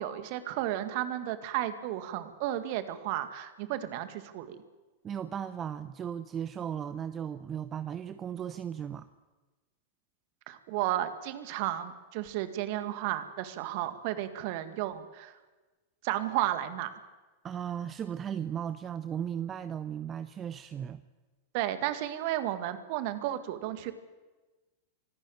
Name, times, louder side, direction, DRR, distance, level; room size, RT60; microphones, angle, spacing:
voice 1, 0.0-4.6 10.5-15.3 16.0-17.0 21.5-23.9, right 13 dB, 45° right, 10 dB, 1.9 m, -33 dB
voice 2, 5.0-9.1 17.4-21.0, right 9 dB, 25° right, 13 dB, 0.7 m, -36 dB
24.5 x 12.0 x 9.3 m, 1.2 s
figure-of-eight pair, 90°, 0 cm